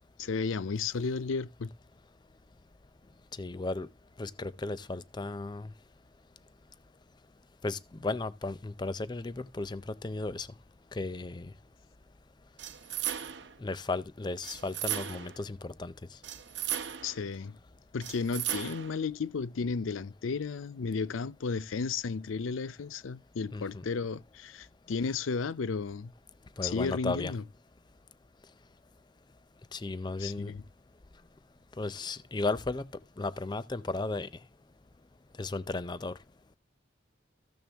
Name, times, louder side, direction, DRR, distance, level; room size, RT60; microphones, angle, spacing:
voice 1, 0.2-1.7 17.0-17.6 17.9-26.1 26.6-27.4 30.2-30.6, left 4 dB, 85° left, 0.5 m, -33 dB
voice 2, 3.4-3.9 4.2-5.7 7.6-10.5 10.9-11.5 13.6-15.9 23.5-23.8 26.6-27.3 29.7-30.5 31.8-32.9 33.2-34.3 35.4-36.2, left 3 dB, 20° left, 0.5 m, -35 dB
sound 1, 12.6-13.6 14.4-15.4 16.2-17.2 18.0-19.0, right 10 dB, 65° right, 0.8 m, -36 dB
14.5 x 6.6 x 3.4 m
head